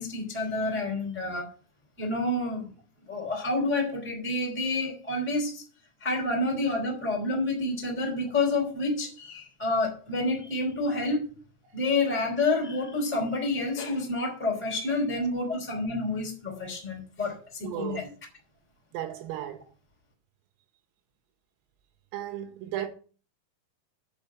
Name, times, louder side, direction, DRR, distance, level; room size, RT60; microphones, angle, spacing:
voice 1, 0.0-1.4 2.0-2.7 3.1-5.6 6.0-11.2 11.7-18.1, left 2 dB, 5° left, 3.1 m, -29 dB
voice 2, 17.6-18.0 18.9-19.7 22.1-22.9, right 12 dB, 90° right, 4.2 m, -35 dB
8.3 x 5.8 x 7.9 m
omnidirectional pair, 5.8 m